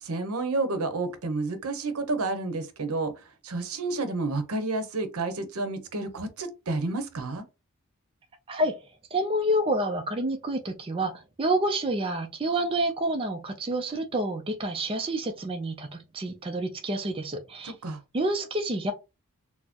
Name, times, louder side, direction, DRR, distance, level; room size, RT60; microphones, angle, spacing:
voice 1, 0.0-3.1 3.4-7.4 17.6-18.0, right 3 dB, 75° right, 0.8 m, -30 dB
voice 2, 9.1-17.7 18.1-18.9, right 1 dB, 25° right, 0.4 m, -28 dB
4.2 x 2.0 x 2.8 m
head